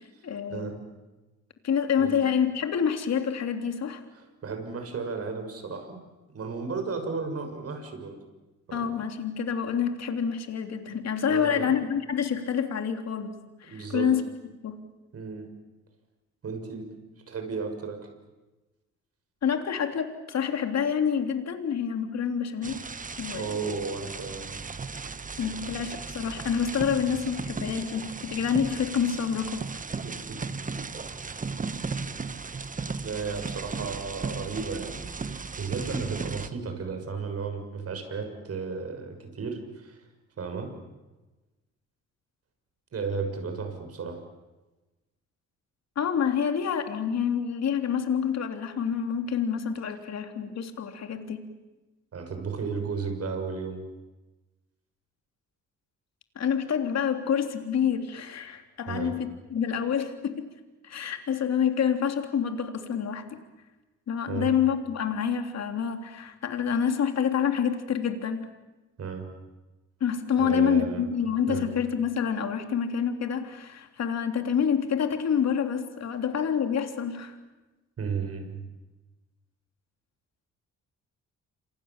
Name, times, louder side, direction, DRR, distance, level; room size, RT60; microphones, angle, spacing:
voice 1, 0.2-0.8 1.6-4.0 8.7-14.2 14.6-14.8 19.4-22.9 23.2-23.5 25.4-29.7 46.0-51.5 56.4-60.5 60.8-63.4 64.1-68.5 70.0-77.4, left 7 dB, 60° left, 6 dB, 3.4 m, -27 dB
voice 2, 4.4-6.0 6.3-8.2 8.7-8.9 11.3-11.7 13.7-14.1 15.1-15.5 16.4-16.9 17.3-18.0 23.3-24.5 30.0-30.4 32.6-32.7 33.0-40.0 40.4-40.7 42.9-44.2 52.1-53.8 58.9-59.2 64.3-64.5 69.0-69.3 70.4-71.0 71.5-71.7 78.0-78.6, right 5 dB, 50° right, 6 dB, 6.6 m, -34 dB
sound 1, 22.6-36.5, right 4 dB, 25° right, 1.3 m, -36 dB
28.5 x 26.0 x 7.5 m, 1.1 s
cardioid pair, 90°, 30 cm